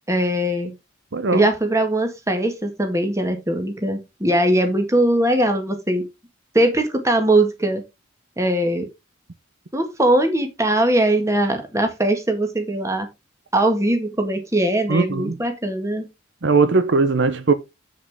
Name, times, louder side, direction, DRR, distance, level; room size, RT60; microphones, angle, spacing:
voice 1, 0.1-0.7 1.3-6.1 6.5-7.8 8.4-8.9 9.7-13.1 13.5-16.1, right 1 dB, 15° right, 1.7 m, -20 dB
voice 2, 1.1-1.5 14.9-15.4 16.4-17.5, right 4 dB, 65° right, 0.7 m, -19 dB
7.7 x 6.5 x 3.6 m
head